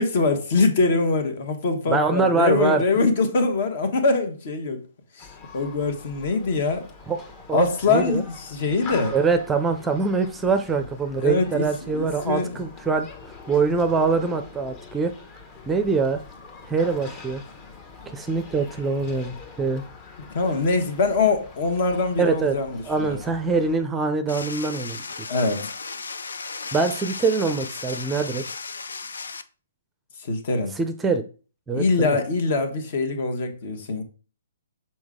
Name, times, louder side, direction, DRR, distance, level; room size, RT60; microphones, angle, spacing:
voice 1, 0.0-4.8 5.1-6.9 7.5-9.1 11.2-12.6 20.3-23.2 25.3-25.7 30.2-30.8 31.7-34.0, left 3 dB, 50° left, 1.3 m, -23 dB
voice 2, 1.9-2.8 7.1-8.2 9.1-15.1 15.7-16.2 16.6-17.4 18.1-19.8 22.2-22.6 22.9-25.1 26.7-28.4 30.8-31.2 31.7-32.2, right 4 dB, 10° right, 0.6 m, -24 dB
Human group actions, 5.2-23.8, left 4 dB, 30° left, 1.1 m, -44 dB
sound 1, 24.3-29.4, left 4 dB, 70° left, 0.5 m, -35 dB
6.2 x 4.3 x 3.7 m
figure-of-eight pair, 125°, 0 cm